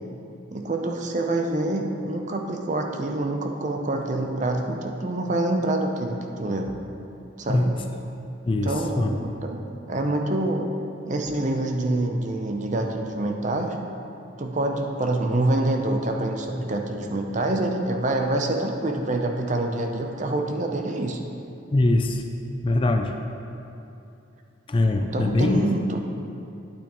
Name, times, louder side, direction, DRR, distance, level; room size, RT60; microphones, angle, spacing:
voice 1, 0.5-6.7 7.4-7.7 8.6-9.6 9.9-10.7 11.1-13.8 14.4-21.2 25.0-26.0, right 2 dB, 40° right, 3 dB, 0.6 m, -26 dB
voice 2, 8.4-9.1 21.7-22.2 22.6-23.1 24.7-25.7, left 2 dB, 25° left, 5 dB, 0.4 m, -22 dB
8.9 x 8.6 x 3.0 m, 2.7 s
head